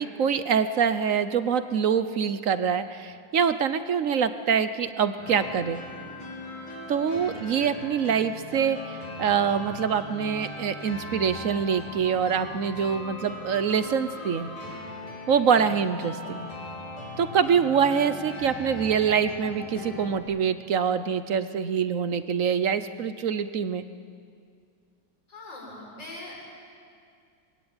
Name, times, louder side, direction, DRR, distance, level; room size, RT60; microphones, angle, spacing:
voice 1, 0.0-5.8 6.9-14.5 15.3-16.5 17.2-23.9, right 7 dB, 55° right, 12 dB, 0.9 m, -25 dB
sound 1, 5.2-20.2, left 2 dB, 80° left, 4.4 m, -39 dB
voice 2, 25.3-26.4, left 2 dB, 60° left, -4 dB, 8.1 m, -41 dB
25.0 x 21.5 x 9.0 m, 2.3 s
omnidirectional pair, 2.2 m